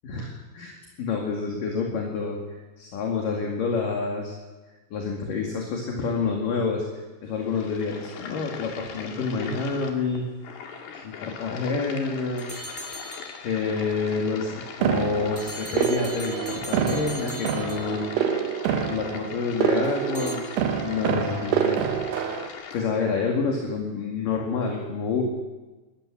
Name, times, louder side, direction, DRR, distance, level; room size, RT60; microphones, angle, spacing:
voice 1, 0.0-2.4 2.8-4.3 4.9-6.9 7.2-10.3 10.5-10.7 11.0-12.5 13.4-18.1 18.8-20.5 20.8-21.8 22.3-25.2, left 4 dB, 55° left, 0 dB, 3.7 m, -28 dB
sound 1, 7.3-22.9, left 6 dB, 75° left, 4.1 m, -40 dB
sound 2, 12.4-13.7 15.4-18.3 20.1-20.4, left 1 dB, 5° left, 1.2 m, -39 dB
sound 3, 14.8-22.5, right 8 dB, 80° right, 3.3 m, -27 dB
22.5 x 14.0 x 9.9 m, 1.2 s
omnidirectional pair, 4.7 m